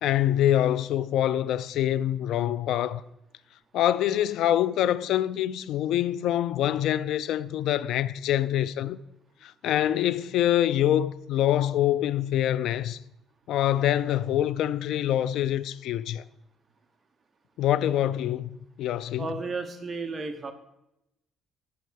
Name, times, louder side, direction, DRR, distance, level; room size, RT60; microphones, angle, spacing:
voice 1, 0.0-3.0 3.7-9.0 9.4-13.0 13.5-16.2 17.6-18.5 18.8-19.3, left 12 dB, 75° left, 0.4 m, -25 dB
voice 2, 19.2-20.5, right 3 dB, 30° right, 1.0 m, -33 dB
12.0 x 5.6 x 6.3 m
cardioid pair, 105°, 0 cm